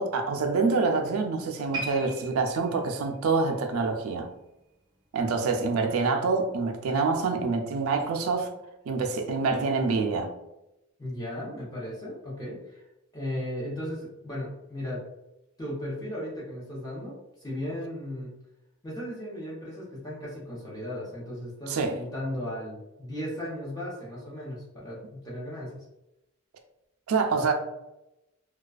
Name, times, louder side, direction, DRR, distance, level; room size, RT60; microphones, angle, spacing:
voice 1, 0.0-4.3 5.1-8.5 8.9-10.3 21.7-22.0 27.1-27.5, right 4 dB, 90° right, 4 dB, 0.4 m, -26 dB
sound 1, 1.7-5.0 5.3-5.6 6.3-6.4, right 2 dB, 20° right, 0.6 m, -41 dB
voice 2, 11.0-12.8 13.1-15.0 15.6-17.1 17.4-18.3 18.8-25.8, left 1 dB, 15° left, -6 dB, 0.7 m, -36 dB
2.3 x 2.3 x 2.3 m, 0.92 s
head